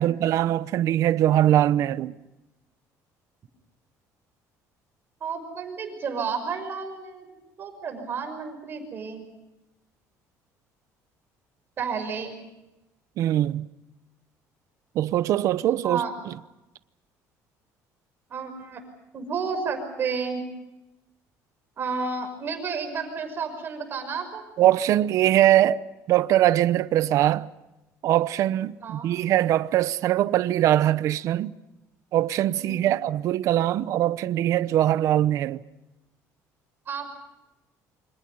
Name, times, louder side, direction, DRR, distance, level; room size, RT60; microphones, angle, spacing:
voice 1, 0.0-2.1 13.2-13.7 14.9-16.3 24.6-27.5 28.0-31.5 32.1-35.6, right 13 dB, 55° right, 0.9 m, -22 dB
voice 2, 5.2-9.3 11.8-12.4 15.8-16.1 18.3-18.8 19.1-20.4 21.8-24.4 28.8-29.2 32.6-32.9 36.9-37.1, right 5 dB, 35° right, 5.9 m, -31 dB
28.5 x 25.5 x 5.5 m
cardioid pair, 155°, 6 cm